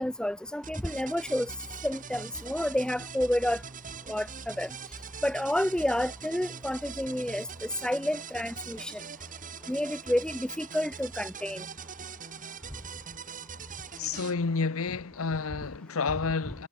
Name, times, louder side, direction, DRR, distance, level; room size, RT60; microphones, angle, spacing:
voice 1, 0.0-1.5 1.8-3.6 4.1-4.7 5.2-9.0 9.7-11.6, left 1 dB, 5° left, 0.7 m, -30 dB
sound 1, 0.6-14.3, right 5 dB, 40° right, 2.6 m, -42 dB
voice 2, 14.0-16.7, left 4 dB, 75° left, 0.8 m, -30 dB
head